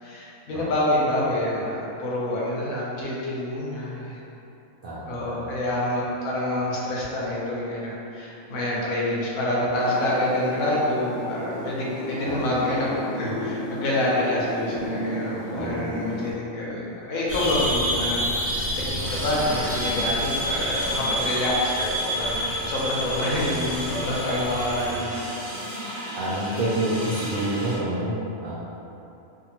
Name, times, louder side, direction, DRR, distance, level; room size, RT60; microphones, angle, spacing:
voice 1, 0.0-4.2 5.1-18.6 18.9-25.2, left 1 dB, 75° left, -6 dB, 1.1 m, -27 dB
voice 2, 4.8-5.4 12.2-12.5 15.6-15.9 26.1-28.5, right 1 dB, 75° right, -9 dB, 0.5 m, -28 dB
sound 1, 9.7-16.3, equal, 50° left, 0.6 m, -34 dB
sound 2, 17.3-25.0, equal, 10° left, 1.4 m, -28 dB
sound 3, 19.0-27.8, equal, 20° right, 0.4 m, -35 dB
2.7 x 2.6 x 2.8 m, 2.9 s
omnidirectional pair, 1.5 m